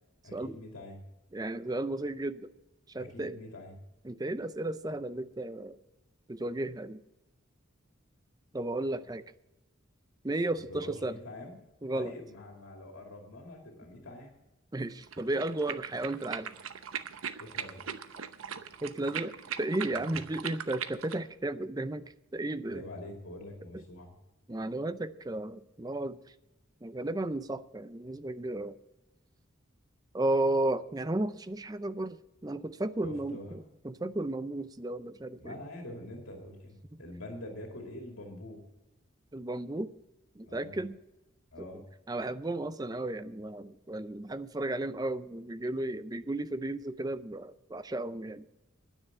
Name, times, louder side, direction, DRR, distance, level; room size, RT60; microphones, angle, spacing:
voice 1, 0.2-1.0 3.0-3.8 10.7-11.6 11.9-14.3 17.3-17.8 19.9-20.2 22.7-24.1 33.0-33.6 35.4-38.6 40.4-40.8 41.5-41.9, left 1 dB, 85° left, 1 dB, 2.3 m, -45 dB
voice 2, 1.3-2.5 2.9-3.4 4.0-5.8 6.3-7.0 8.5-9.2 10.2-11.2 11.8-12.1 14.7-16.5 18.8-22.8 23.7-23.8 24.5-26.2 26.8-28.8 30.1-32.2 32.4-35.5 39.3-39.9 40.4-41.0 41.6-48.4, right 2 dB, 20° right, 13 dB, 0.5 m, -34 dB
sound 1, 15.0-21.2, right 8 dB, 90° right, 0.8 m, -40 dB
10.0 x 9.7 x 7.7 m, 0.97 s
head